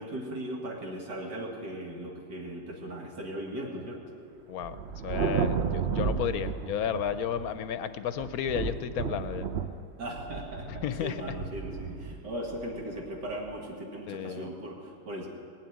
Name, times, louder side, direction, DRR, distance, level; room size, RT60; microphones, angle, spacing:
voice 1, 0.0-4.0 10.0-15.3, right 1 dB, 80° right, -1 dB, 2.7 m, -38 dB
Thunder, 4.6-7.7 8.2-13.5, right 6 dB, 60° right, 0.7 m, -33 dB
voice 2, 5.0-9.5 10.8-11.2 14.1-14.5, left 8 dB, 70° left, 11 dB, 1.0 m, -32 dB
19.0 x 7.5 x 9.3 m, 2.4 s
omnidirectional pair, 1.8 m